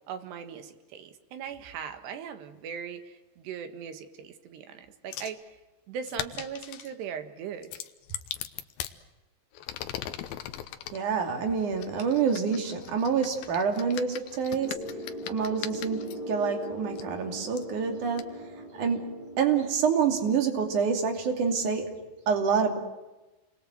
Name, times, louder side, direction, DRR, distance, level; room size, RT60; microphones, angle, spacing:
voice 1, 0.1-5.6 5.9-7.7 8.1-8.2, right 7 dB, 85° right, 8 dB, 3.8 m, -39 dB
sound 1, 5.1-5.4 6.1-6.9 7.6-9.0 9.5-11.0 11.8-16.2 17.0-17.1 17.6-17.7 18.2-18.3, left 12 dB, 70° left, 2.7 m, -39 dB
voice 2, 10.9-14.8 15.3-18.4 18.7-22.8, right 6 dB, 50° right, 4 dB, 3.9 m, -27 dB
sound 2, 14.3-19.7, equal, 45° left, 4.5 m, -40 dB
29.5 x 22.5 x 7.9 m, 1.1 s
omnidirectional pair, 4.7 m